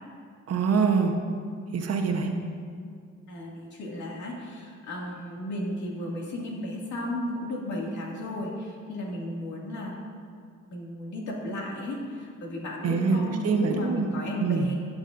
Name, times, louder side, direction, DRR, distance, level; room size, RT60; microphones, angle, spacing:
voice 1, 0.5-1.1 1.7-2.3 12.8-14.1 14.4-14.7, right 5 dB, 55° right, 3 dB, 1.0 m, -24 dB
voice 2, 3.3-10.0 10.7-14.7, left 1 dB, 70° left, -3 dB, 2.2 m, -34 dB
15.5 x 6.2 x 2.6 m, 2.2 s
cardioid pair, 90°, 30 cm